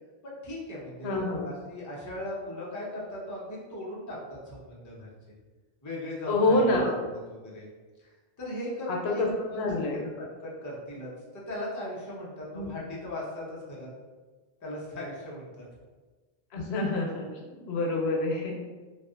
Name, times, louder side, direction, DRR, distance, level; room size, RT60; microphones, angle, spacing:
voice 1, 0.2-5.1 5.8-7.7 8.0-8.1 8.4-9.8 10.2-13.9 14.6-15.6, left 1 dB, 25° left, -4 dB, 0.4 m, -38 dB
voice 2, 1.0-1.5 6.3-6.9 8.9-9.3 9.5-10.1 12.5-12.7 16.5-17.3 17.7-18.5, left 2 dB, 90° left, 0 dB, 0.8 m, -26 dB
2.6 x 2.4 x 2.4 m, 1.3 s
omnidirectional pair, 1.0 m